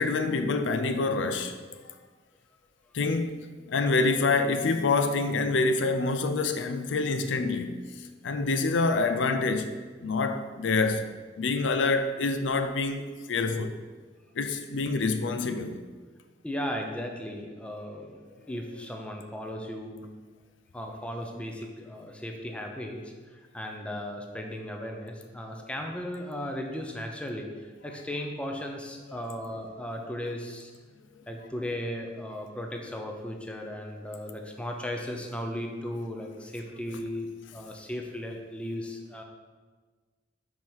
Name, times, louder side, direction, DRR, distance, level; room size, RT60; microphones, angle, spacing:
voice 1, 0.0-1.9 2.9-13.8 14.4-15.8 25.5-25.6, left 3 dB, 80° left, 0.5 m, -27 dB
voice 2, 16.4-18.2 18.5-20.1 20.7-27.5 27.8-30.7 31.3-39.2, left 1 dB, 5° left, 0.6 m, -36 dB
4.8 x 4.4 x 5.5 m
head